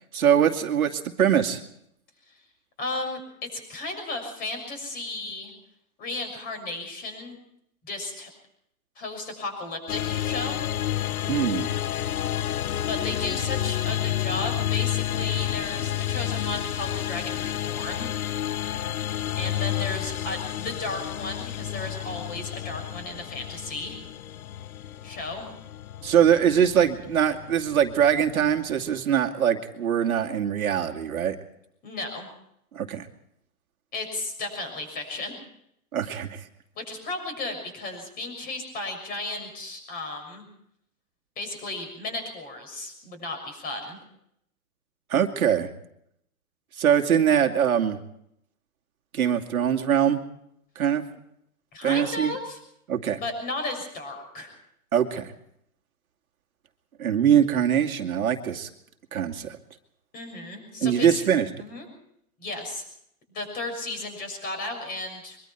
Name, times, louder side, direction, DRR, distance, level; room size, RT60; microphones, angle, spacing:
voice 1, 0.1-1.6 11.3-11.7 26.0-31.4 32.7-33.1 35.9-36.4 45.1-45.7 46.8-48.0 49.1-50.2 50.8-51.0 51.8-52.4 52.9-53.2 54.9-55.3 57.0-58.7 59.1-59.6 60.8-61.5, right 9 dB, 70° right, 3 dB, 2.5 m, -22 dB
voice 2, 2.8-5.5 6.0-7.4 7.8-8.3 9.0-10.6 12.8-18.1 19.3-24.0 25.0-25.5 31.8-32.3 33.9-35.4 36.7-40.5 41.4-44.0 51.7-52.6 53.2-54.5 60.1-61.2 61.6-61.9 62.4-62.8 63.3-65.4, left 2 dB, 20° left, 6 dB, 6.5 m, -34 dB
sound 1, 9.9-29.0, left 12 dB, 75° left, 0.8 m, -30 dB
23.5 x 23.5 x 4.6 m, 0.74 s
hypercardioid pair, 155°, 44 cm